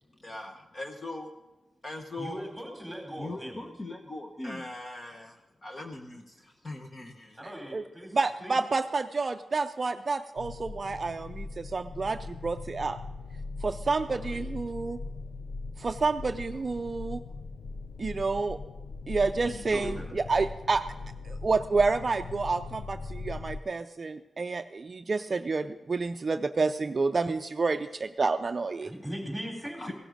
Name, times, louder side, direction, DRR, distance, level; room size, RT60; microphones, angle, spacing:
voice 1, 0.2-1.3 1.8-2.4 3.2-7.4 29.8-29.9, left 2 dB, 35° left, 4 dB, 1.0 m, -40 dB
voice 2, 2.2-3.7 7.4-8.1 8.4-8.6 14.1-14.4 19.4-20.1 28.8-29.9, equal, 5° left, 0 dB, 3.8 m, -39 dB
voice 3, 8.1-13.0 13.6-15.0 15.8-17.2 18.0-18.6 19.1-20.8 21.2-28.9, right 4 dB, 40° right, 8 dB, 0.4 m, -29 dB
sound 1, 10.4-23.6, left 3 dB, 70° left, 0.6 m, -40 dB
16.5 x 11.5 x 5.1 m, 1.0 s
wide cardioid pair, 120°, 0 cm